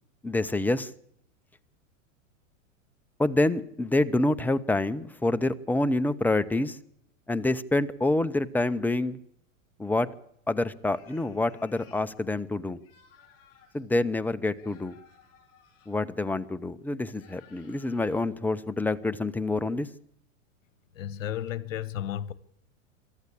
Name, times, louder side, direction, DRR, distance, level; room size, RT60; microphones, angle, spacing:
voice 1, 0.2-0.9 3.2-6.8 7.3-9.2 9.8-10.1 10.5-12.8 13.7-14.9 15.9-19.9, left 2 dB, 5° left, 0.7 m, -27 dB
sound 1, 10.8-12.1 12.8-13.8 14.5-16.0 17.0-18.2, left 7 dB, 35° left, 7.1 m, -58 dB
voice 2, 20.9-22.3, left 11 dB, 70° left, 1.3 m, -33 dB
23.5 x 13.5 x 8.5 m
hypercardioid pair, 110°, 39 cm